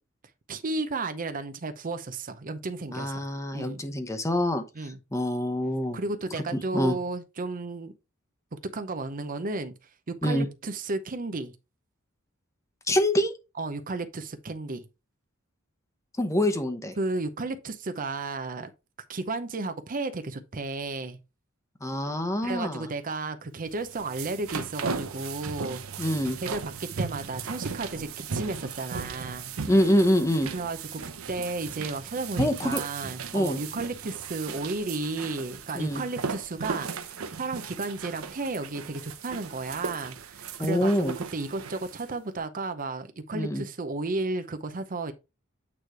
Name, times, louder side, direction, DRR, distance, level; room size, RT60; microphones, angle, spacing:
voice 1, 0.5-3.2 3.5-3.8 4.8-5.0 5.9-7.9 8.7-9.7 10.1-11.5 13.6-14.8 17.0-18.7 19.1-21.2 22.4-25.8 26.4-29.5 30.5-40.9 41.3-45.1, right 3 dB, 40° right, 0.7 m, -33 dB
voice 2, 2.9-6.0 6.5-7.0 10.2-10.5 12.9-13.3 16.2-16.9 21.8-22.9 26.0-26.4 29.7-30.5 32.4-32.8 33.3-33.6 35.7-36.0 40.6-41.2 43.3-43.6, equal, 15° left, 0.8 m, -25 dB
sound 1, 23.7-42.1, right 5 dB, 90° right, 0.8 m, -37 dB
8.8 x 3.2 x 4.5 m
head